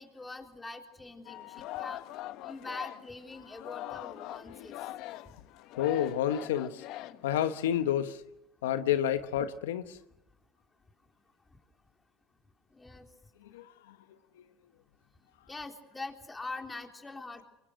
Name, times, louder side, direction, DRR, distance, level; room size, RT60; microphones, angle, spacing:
voice 1, 0.0-2.0 2.4-4.8 12.7-13.1 15.5-17.4, left 3 dB, 15° left, 3.7 m, -43 dB
Singing, 1.2-7.7, left 15 dB, 65° left, 1.2 m, -42 dB
voice 2, 5.8-6.8 7.2-8.2 8.6-10.0 13.5-13.6 14.4-14.5, left 10 dB, 90° left, 1.1 m, -29 dB
25.0 x 24.0 x 6.4 m
supercardioid pair, 90°, 0 cm